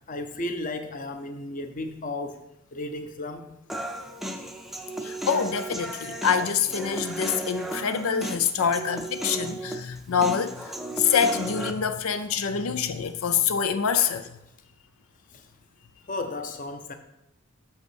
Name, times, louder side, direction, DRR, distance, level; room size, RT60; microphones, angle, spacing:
voice 1, 0.1-2.4 2.7-3.5 8.6-9.0 12.6-12.7 13.9-14.2 15.3-15.4 16.1-16.9, left 2 dB, 40° left, 0.7 m, -34 dB
Human voice, 3.7-11.7, right 1 dB, ahead, 0.5 m, -34 dB
voice 2, 5.0-10.6 11.0-14.3, left 7 dB, 90° left, 0.5 m, -25 dB
6.6 x 5.4 x 6.3 m
head